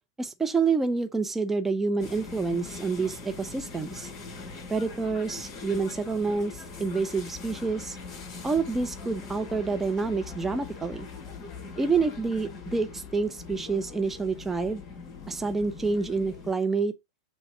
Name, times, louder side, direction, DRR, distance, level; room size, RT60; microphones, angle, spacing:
voice 1, 0.2-4.1 4.7-8.0 8.4-11.1 11.8-14.8 15.3-16.9, right 4 dB, 10° right, 0.7 m, -28 dB
sound 1, 2.0-16.5, left 4 dB, 30° left, 3.9 m, -42 dB
6.8 x 3.4 x 5.5 m
hypercardioid pair, 105°, 2 cm